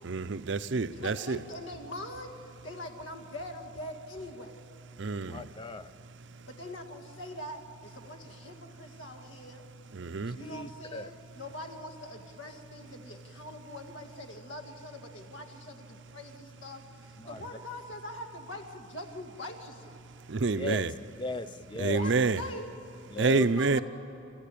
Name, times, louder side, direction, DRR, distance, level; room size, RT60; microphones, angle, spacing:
voice 1, 0.0-1.4 5.0-5.5 9.9-10.4 20.3-20.9 21.8-22.4 23.2-23.8, right 3 dB, 65° right, 13 dB, 0.6 m, -28 dB
voice 2, 0.9-4.6 6.5-9.6 10.3-20.0 21.9-22.7 23.4-23.8, left 1 dB, 75° left, 4 dB, 2.1 m, -43 dB
voice 3, 5.3-5.9 10.4-11.1 17.2-17.4 20.5-20.8 21.2-22.0 23.1-23.5, left 2 dB, 25° left, 12 dB, 0.5 m, -37 dB
30.0 x 14.5 x 8.5 m, 2.7 s
head